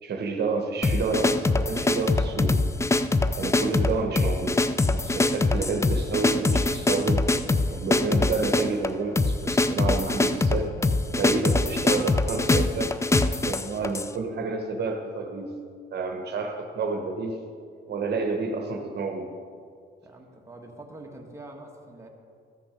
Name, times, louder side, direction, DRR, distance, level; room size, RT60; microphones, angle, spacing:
voice 1, 0.0-2.6 3.4-7.3 7.7-10.7 11.2-12.9 13.2-15.6 15.9-17.4 17.9-19.3, right 4 dB, 55° right, 3 dB, 1.1 m, -29 dB
sound 1, 0.8-14.1, left 2 dB, 15° left, 0.4 m, -23 dB
voice 2, 20.0-22.1, right 2 dB, 15° right, 0 dB, 1.5 m, -44 dB
14.0 x 6.0 x 5.1 m, 2.3 s
cardioid pair, 90°, 20 cm